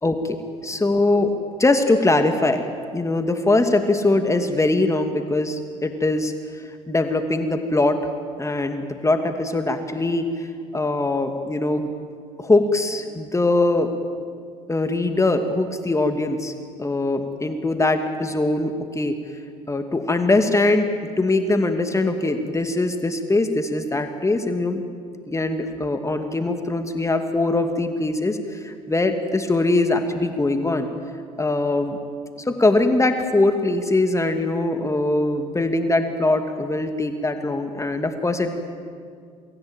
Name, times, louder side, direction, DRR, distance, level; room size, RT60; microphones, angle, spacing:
voice 1, 0.0-0.4 0.6-1.3 1.6-2.6 2.9-8.1 8.4-11.9 12.4-13.9 14.7-16.5 16.8-19.2 19.7-20.9 21.2-24.8 25.3-30.9 31.4-32.0 32.4-38.5, left 2 dB, 15° left, 6 dB, 2.4 m, -22 dB
28.0 x 22.0 x 9.0 m, 2.2 s
hypercardioid pair, 65°, 17 cm